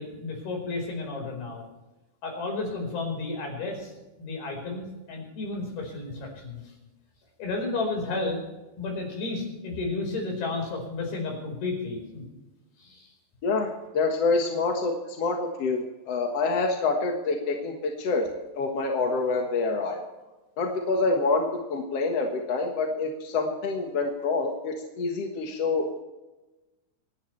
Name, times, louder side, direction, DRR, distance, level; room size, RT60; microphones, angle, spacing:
voice 1, 0.0-1.6 2.2-3.9 4.2-6.6 7.4-8.4 8.8-12.2 12.8-13.1, left 3 dB, 80° left, 1 dB, 6.7 m, -32 dB
voice 2, 13.4-18.3 18.5-20.0 20.6-21.5 21.7-25.9, left 3 dB, 55° left, 2 dB, 2.1 m, -27 dB
27.0 x 11.5 x 3.3 m, 1.1 s
omnidirectional pair, 4.3 m